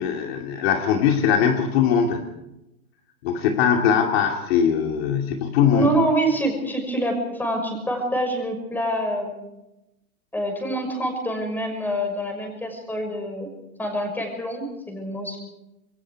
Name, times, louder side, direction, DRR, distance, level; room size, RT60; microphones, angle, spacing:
voice 1, 0.0-2.2 3.2-6.0, left 7 dB, 45° left, 2 dB, 2.7 m, -21 dB
voice 2, 5.7-9.4 10.3-13.5 13.8-15.4, right 1 dB, 5° left, 3 dB, 5.9 m, -26 dB
28.5 x 22.0 x 4.7 m, 0.92 s
hypercardioid pair, 150°, 43 cm